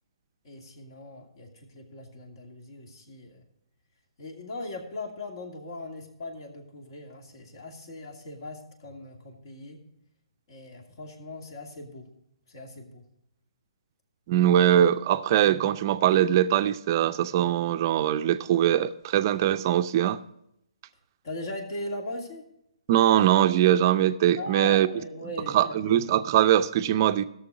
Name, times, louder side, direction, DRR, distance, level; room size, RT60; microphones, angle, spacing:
voice 1, 0.4-3.4 4.2-9.8 10.5-12.0 12.5-13.0 21.2-22.4 24.4-26.0, left 2 dB, 50° left, 2.6 m, -39 dB
voice 2, 14.3-20.2 22.9-24.9 25.5-27.2, right 11 dB, 35° right, 0.5 m, -22 dB
16.5 x 6.9 x 4.8 m
figure-of-eight pair, 140°, 3 cm